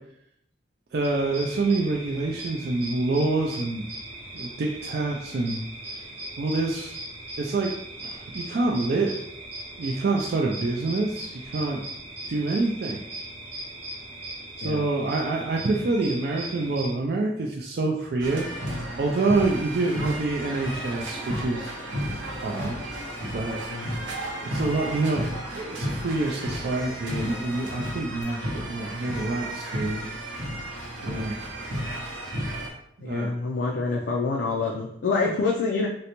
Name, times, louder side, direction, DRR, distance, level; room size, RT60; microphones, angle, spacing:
voice 1, 0.9-3.9 4.3-5.6 6.4-7.0 7.4-7.7 8.0-9.2 9.8-11.8 12.3-13.0 14.6-18.5 19.0-21.7 22.3-22.8 23.3-23.6 24.4-30.1 31.0-31.3 33.0-33.3, right 3 dB, 55° right, -1 dB, 0.3 m, -27 dB
sound 1, 1.0-16.9, right 1 dB, 30° right, 0.7 m, -39 dB
sound 2, 18.2-32.7, right 1 dB, 85° right, 0.8 m, -33 dB
sound 3, 20.4-28.2, left 2 dB, 5° left, 0.6 m, -49 dB
voice 2, 33.0-35.9, left 4 dB, 65° left, -1 dB, 0.4 m, -26 dB
3.8 x 2.1 x 2.9 m, 0.75 s
head